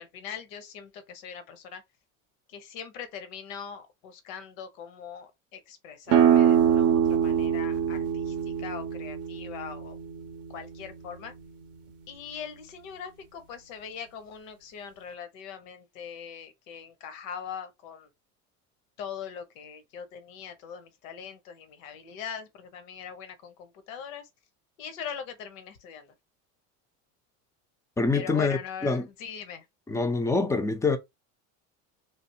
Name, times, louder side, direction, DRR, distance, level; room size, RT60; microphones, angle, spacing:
voice 1, 0.0-1.8 2.5-10.0 10.5-11.3 12.1-18.1 19.0-24.3 24.8-26.1 28.1-29.6, left 7 dB, 85° left, 0.9 m, -41 dB
sound 1, 6.1-11.5, right 9 dB, 40° right, 0.6 m, -24 dB
voice 2, 28.0-29.1 29.9-31.0, left 3 dB, 10° left, 0.4 m, -25 dB
3.4 x 2.4 x 2.7 m
supercardioid pair, 105°, 39 cm